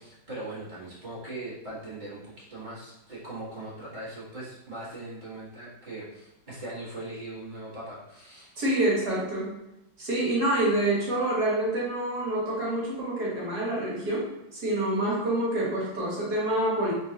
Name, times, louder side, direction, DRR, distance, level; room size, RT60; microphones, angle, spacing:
voice 1, 0.0-8.5, right 2 dB, 25° right, -9 dB, 1.4 m, -40 dB
voice 2, 8.6-9.5 10.0-16.9, right 1 dB, 55° right, -6 dB, 1.9 m, -27 dB
3.9 x 3.9 x 2.8 m, 0.89 s
omnidirectional pair, 2.2 m